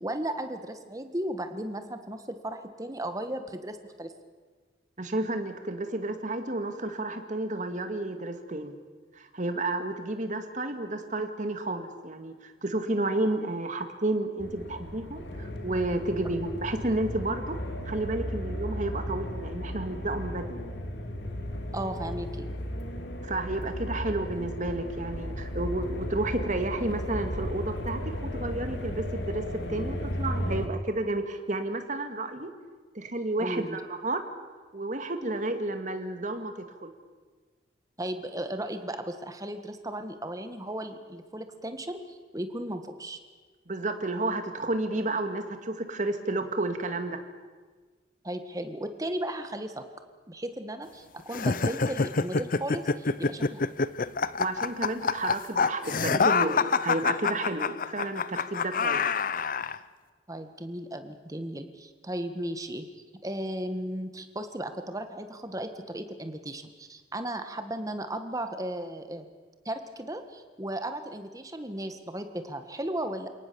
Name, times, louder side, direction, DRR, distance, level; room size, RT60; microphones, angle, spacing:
voice 1, 0.0-4.1 21.7-22.5 33.4-33.8 38.0-43.2 48.2-49.8 50.3-53.7 60.3-62.9 63.2-69.2 69.6-73.3, right 1 dB, 20° right, 8 dB, 1.6 m, -35 dB
voice 2, 5.0-8.7 9.2-17.6 17.9-20.5 23.2-29.4 29.7-32.5 32.9-34.2 34.7-36.9 43.7-47.2 54.4-59.0, right 2 dB, 45° right, 7 dB, 2.1 m, -31 dB
sound 1, 14.4-30.7, equal, 75° left, 2.6 m, -35 dB
sound 2, 51.3-59.8, left 4 dB, 50° left, 0.6 m, -27 dB
29.0 x 18.5 x 7.0 m, 1.4 s
head